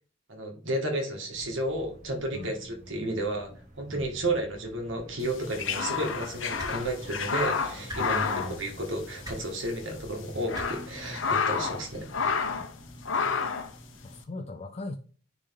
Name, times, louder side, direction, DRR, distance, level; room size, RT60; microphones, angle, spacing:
voice 1, 0.3-3.5 3.8-12.1, right 1 dB, 70° right, 2.1 m, -32 dB
sound 1, 1.3-14.2, equal, 40° right, 1.5 m, -47 dB
sound 2, 5.3-9.4 9.6-9.7 10.2-11.8 12.1-12.7 13.0-13.7, left 5 dB, 75° left, 1.0 m, -30 dB
sound 3, 6.6-6.7 7.9-8.0 9.2-9.4 10.5-10.7 11.9-12.0, equal, 20° right, 2.0 m, -38 dB
voice 2, 7.9-8.8 12.6-13.4 14.0-15.0, left 2 dB, 35° left, 0.5 m, -40 dB
9.8 x 3.7 x 3.7 m
head